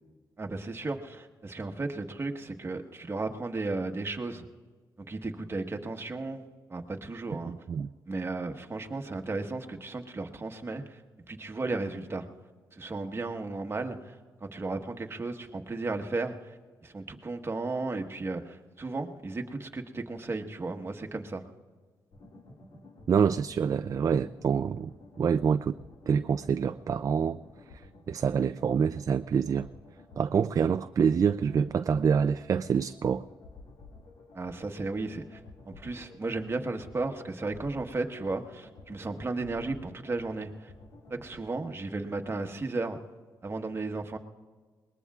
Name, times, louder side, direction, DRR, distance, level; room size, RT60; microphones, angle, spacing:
voice 1, 0.4-4.5 5.1-6.4 6.7-7.5 8.1-11.0 11.3-12.2 12.7-14.1 14.4-16.5 16.8-21.4 34.3-35.4 35.6-40.7 41.1-43.0 43.4-44.2, right 3 dB, 30° right, 3 dB, 1.4 m, -34 dB
voice 2, 7.5-7.9 23.1-24.9 25.2-25.8 26.1-27.4 28.1-29.7 30.2-33.3, right 7 dB, 45° right, 11 dB, 0.4 m, -26 dB
sound 1, 22.1-41.4, left 2 dB, 75° left, 2.1 m, -52 dB
22.0 x 20.5 x 2.4 m, 1.5 s
cardioid pair, 80°, 8 cm